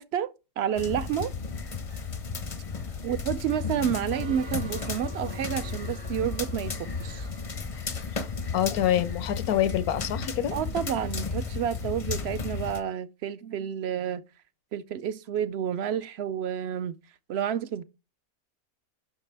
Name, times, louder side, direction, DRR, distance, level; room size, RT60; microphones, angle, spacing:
voice 1, 0.0-1.3 3.0-7.3 10.5-14.2 14.7-17.0 17.3-17.8, right 9 dB, 65° right, 0.6 m, -30 dB
sound 1, 0.8-12.8, left 5 dB, 40° left, 0.5 m, -34 dB
sound 2, 4.1-9.1, right 6 dB, 45° right, 0.9 m, -48 dB
voice 2, 8.5-10.6, left 11 dB, 85° left, 1.2 m, -26 dB
10.5 x 6.0 x 3.3 m
omnidirectional pair, 1.5 m